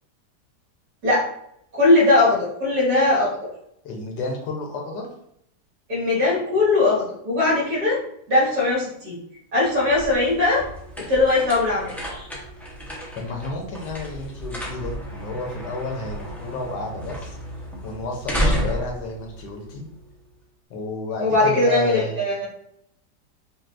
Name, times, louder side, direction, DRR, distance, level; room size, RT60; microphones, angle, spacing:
voice 1, 1.7-3.5 5.9-8.0 8.3-9.2 9.5-10.6 11.0-12.3 21.2-22.5, left 2 dB, 65° right, -7 dB, 2.2 m, -20 dB
voice 2, 3.8-5.1 13.1-17.4 17.8-19.8 20.7-22.2, left 2 dB, 80° left, 1 dB, 1.4 m, -31 dB
sound 1, 9.6-20.3, equal, 5° left, 0.3 m, -32 dB
5.4 x 2.5 x 2.5 m, 0.74 s
omnidirectional pair, 1.9 m